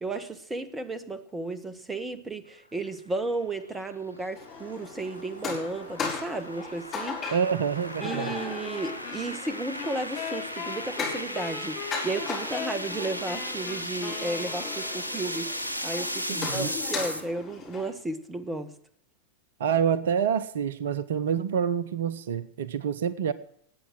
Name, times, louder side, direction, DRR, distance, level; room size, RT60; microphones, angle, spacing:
voice 1, 0.0-7.3 8.0-15.5 15.8-18.7, right 2 dB, 10° right, 13 dB, 1.3 m, -34 dB
sound 1, 3.3-17.2, equal, 80° right, 1.5 m, -36 dB
sound 2, 4.4-17.9, left 5 dB, 25° left, 7.0 m, -38 dB
voice 2, 7.3-8.3 16.4-16.7 19.6-23.3, right 7 dB, 60° right, 17 dB, 0.7 m, -27 dB
sound 3, 8.6-15.2, left 8 dB, 45° left, 2.6 m, -40 dB
19.5 x 8.5 x 7.6 m, 0.69 s
figure-of-eight pair, 90°, 0 cm